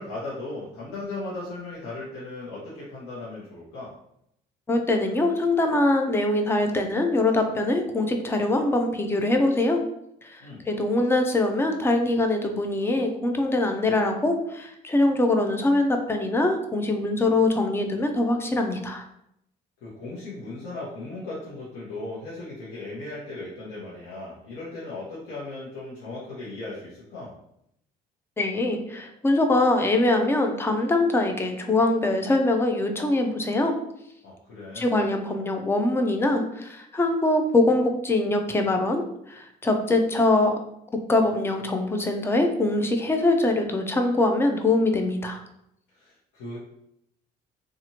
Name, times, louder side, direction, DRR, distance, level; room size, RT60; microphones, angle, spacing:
voice 1, 0.0-3.9 10.4-10.6 19.8-27.3 34.2-35.0 45.9-46.6, left 2 dB, 85° left, -7 dB, 0.9 m, -37 dB
voice 2, 4.7-9.8 10.3-19.0 28.4-33.7 34.8-39.0 39.3-40.5 41.1-45.4, left 2 dB, 15° left, 5 dB, 0.4 m, -23 dB
2.8 x 2.4 x 2.8 m, 0.76 s
cardioid pair, 110°, 17 cm